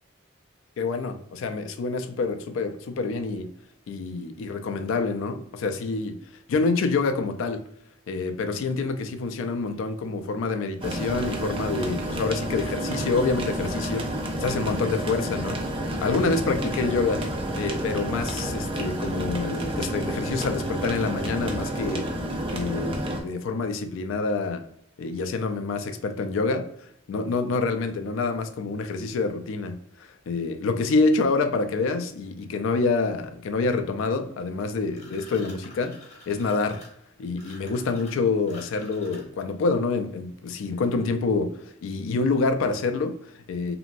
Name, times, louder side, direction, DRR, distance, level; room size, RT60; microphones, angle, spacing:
voice 1, 0.8-3.5 3.9-6.2 6.5-7.6 8.1-14.1 14.4-15.6 16.0-17.3 17.6-22.1 22.5-24.6 25.0-29.8 30.3-36.8 37.2-43.8, left 3 dB, 75° left, 0.3 m, -27 dB
sound 1, 10.8-23.2, right 1 dB, 25° right, 0.3 m, -30 dB
sound 2, 34.9-39.5, left 2 dB, 30° left, 0.9 m, -48 dB
3.0 x 2.6 x 2.4 m
head